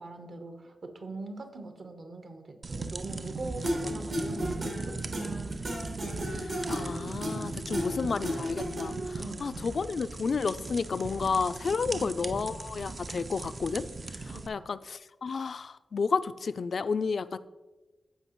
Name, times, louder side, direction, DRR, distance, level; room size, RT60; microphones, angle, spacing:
voice 1, 0.0-5.4 7.7-8.0 9.2-9.8 11.9-12.2 14.3-14.7, right 2 dB, 60° right, 6 dB, 1.0 m, -43 dB
sound 1, 2.6-14.5, right 3 dB, 45° right, 0.4 m, -39 dB
sound 2, 3.6-9.2, equal, 80° right, 2.9 m, -34 dB
voice 2, 6.3-13.9 14.1-17.4, left 5 dB, 65° left, 14 dB, 0.3 m, -31 dB
13.5 x 4.9 x 3.0 m, 1.2 s
cardioid pair, 75°, 0 cm